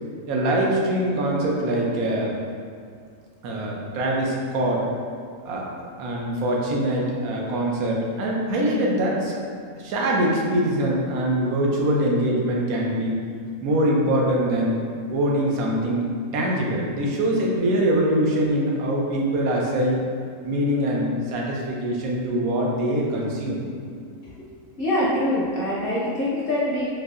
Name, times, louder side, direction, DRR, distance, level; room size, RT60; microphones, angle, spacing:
voice 1, 0.3-2.4 3.4-4.9 5.4-5.7 6.0-9.4 9.8-13.2 13.6-14.8 15.1-20.0 20.4-23.6, right 1 dB, 90° right, -2 dB, 1.1 m, -23 dB
voice 2, 24.8-26.9, left 1 dB, 60° left, -7 dB, 0.6 m, -24 dB
3.8 x 2.7 x 2.4 m, 2.2 s
omnidirectional pair, 1.5 m